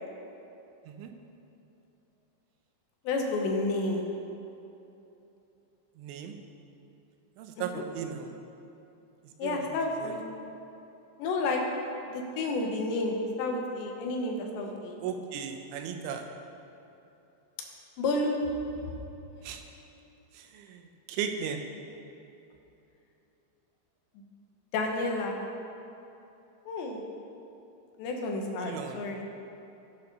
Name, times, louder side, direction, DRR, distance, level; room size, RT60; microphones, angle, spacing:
voice 1, 3.0-4.1 7.6-7.7 9.4-10.2 11.2-11.6 12.1-15.0 18.0-18.4 24.7-25.4 26.7-27.0 28.0-29.2, left 2 dB, 75° left, 1 dB, 3.3 m, -30 dB
voice 2, 6.0-6.3 7.4-8.3 9.4-10.1 15.0-16.3 19.4-19.6 20.3-21.7 28.6-29.0, right 7 dB, 90° right, 5 dB, 3.3 m, -37 dB
17.0 x 6.9 x 5.5 m, 2.9 s
omnidirectional pair, 5.4 m